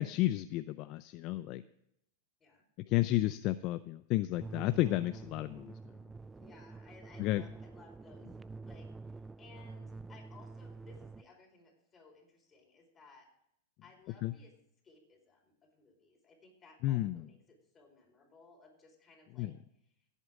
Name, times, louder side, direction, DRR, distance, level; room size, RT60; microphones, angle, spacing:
voice 1, 0.0-1.6 2.9-5.7 7.2-7.4 14.2-14.3 16.8-17.2 19.4-19.5, left 16 dB, 45° left, 13 dB, 0.4 m, -32 dB
sound 1, 4.4-11.2, right 3 dB, 15° right, 0.4 m, -48 dB
voice 2, 6.4-8.3 8.6-13.3 13.8-14.5 14.8-19.5, left 4 dB, 20° left, 1 dB, 4.5 m, -60 dB
17.0 x 8.2 x 3.6 m, 0.74 s
hypercardioid pair, 125°, 0 cm